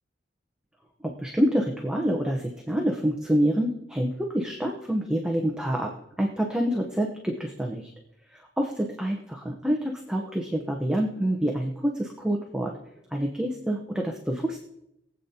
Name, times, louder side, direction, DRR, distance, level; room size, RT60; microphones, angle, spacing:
voice 1, 1.0-7.9 8.3-14.6, equal, 5° right, 1 dB, 0.9 m, -27 dB
22.5 x 8.2 x 2.8 m, 0.85 s
head